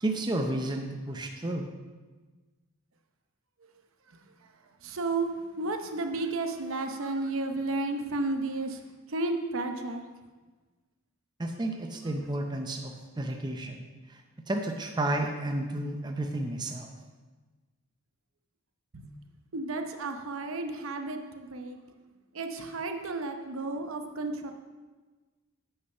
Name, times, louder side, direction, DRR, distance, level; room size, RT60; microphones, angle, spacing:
voice 1, 0.0-1.7 11.4-13.8 14.1-14.2 14.5-16.9, right 1 dB, 20° right, 3 dB, 0.5 m, -32 dB
voice 2, 4.8-5.3 5.6-8.8 9.1-10.0 18.9-19.1 19.5-21.8 22.3-24.5, right 2 dB, 65° right, 5 dB, 0.8 m, -32 dB
8.1 x 6.5 x 5.5 m, 1.3 s
head